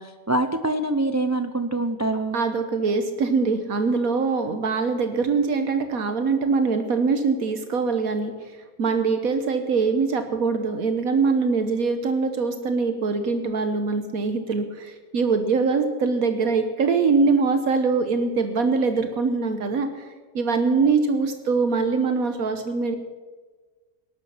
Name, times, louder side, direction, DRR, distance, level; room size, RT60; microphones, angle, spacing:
voice 1, 0.0-2.4, right 2 dB, 25° right, 8 dB, 0.4 m, -25 dB
voice 2, 2.3-8.5 8.8-20.0 20.3-23.0, right 4 dB, 75° right, 7 dB, 1.5 m, -23 dB
19.0 x 12.0 x 5.7 m, 1.4 s
omnidirectional pair, 1.5 m